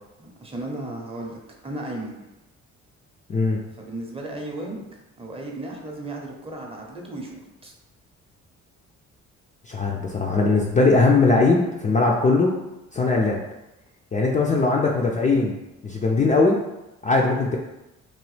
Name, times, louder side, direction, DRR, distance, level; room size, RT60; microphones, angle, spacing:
voice 1, 0.2-2.2 3.7-4.9 5.2-7.7, right 2 dB, 20° right, 0 dB, 0.6 m, -35 dB
voice 2, 9.7-12.6 12.9-13.4 14.1-16.6 17.0-17.6, left 3 dB, 25° left, -2 dB, 0.4 m, -20 dB
2.9 x 2.1 x 3.2 m, 0.97 s
cardioid pair, 90°, 30 cm